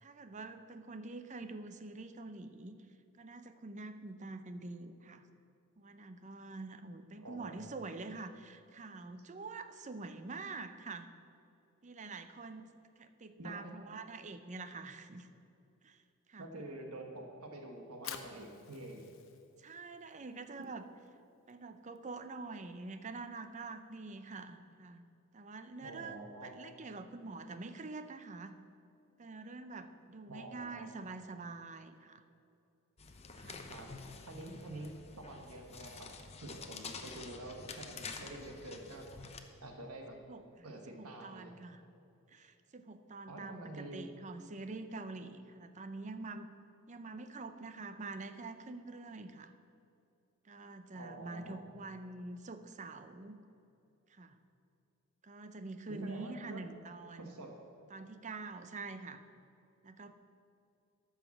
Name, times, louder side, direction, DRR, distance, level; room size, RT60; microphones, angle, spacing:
voice 1, 0.0-2.8 3.2-5.2 5.8-11.1 11.8-12.7 13.0-15.3 15.8-16.0 16.3-16.5 19.6-20.8 21.5-25.1 25.3-28.5 29.2-32.2 33.4-33.6 40.3-40.7 41.0-41.8 42.3-46.5 46.9-49.5 50.4-53.4 54.1-54.4 55.2-57.3 57.9-59.2 59.8-60.1, right 3 dB, 35° right, 10 dB, 0.6 m, -46 dB
voice 2, 7.1-7.6 12.0-12.1 13.4-13.8 16.4-19.1 25.8-26.5 30.3-30.9 33.7-33.9 34.3-36.1 36.4-39.0 39.6-40.2 40.6-41.6 43.3-44.1 50.9-51.6 55.9-56.6 57.2-57.5, right 1 dB, 85° right, 2 dB, 1.5 m, -47 dB
Fire, 18.0-24.0, left 8 dB, 65° left, 0.8 m, -53 dB
sound 1, 33.0-39.4, left 4 dB, 30° left, 0.7 m, -48 dB
12.5 x 5.7 x 7.2 m, 2.6 s
head